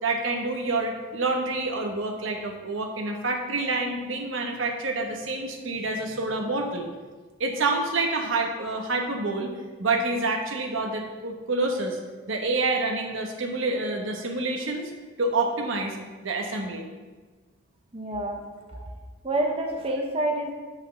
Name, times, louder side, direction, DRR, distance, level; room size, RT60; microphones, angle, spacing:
voice 1, 0.0-6.9 7.4-9.5 9.8-12.0 12.3-14.9 15.2-16.0 16.2-16.9 18.7-18.8, right 3 dB, 65° right, 2 dB, 1.1 m, -27 dB
voice 2, 17.9-18.4 19.2-20.5, right 1 dB, 30° right, 1 dB, 0.9 m, -27 dB
6.2 x 5.5 x 6.8 m, 1.4 s
head